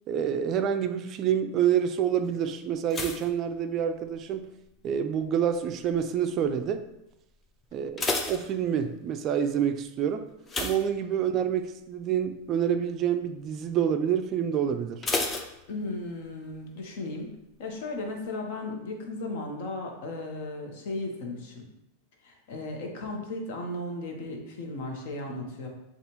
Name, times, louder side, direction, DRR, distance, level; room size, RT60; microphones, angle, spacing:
voice 1, 0.1-4.5 4.8-6.8 7.7-10.3 10.6-15.1, right 8 dB, 35° right, 0.3 m, -27 dB
sound 1, 2.9-4.4 4.6-5.1 5.7-6.1 6.4-6.5 6.9-7.0 7.6-9.2 10.4-11.6 12.0-12.2 12.6-12.7 15.0-16.2 16.5-16.6, left 3 dB, 20° left, 0.5 m, -33 dB
voice 2, 15.7-17.3 17.6-21.7 22.2-25.7, left 2 dB, 65° left, 1.0 m, -35 dB
6.6 x 2.4 x 3.0 m
supercardioid pair, 140°, 0 cm